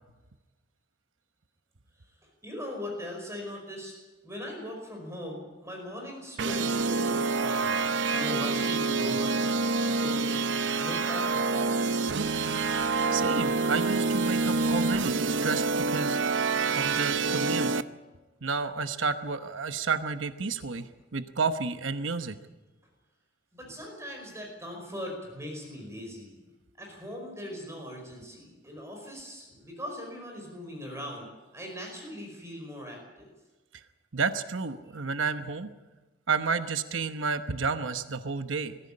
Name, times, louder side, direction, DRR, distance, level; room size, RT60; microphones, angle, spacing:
voice 1, 2.4-3.9 4.2-10.4 10.8-11.9 23.5-26.4 26.8-33.3, left 1 dB, 15° right, 1 dB, 5.2 m, -40 dB
sound 1, 6.4-17.8, right 3 dB, 70° right, 0.7 m, -27 dB
voice 2, 13.1-16.2 16.8-17.7 18.4-22.4 33.7-33.8 34.1-35.7 36.3-38.8, right 4 dB, 90° right, 9 dB, 1.0 m, -31 dB
21.5 x 15.0 x 8.6 m, 1.2 s
head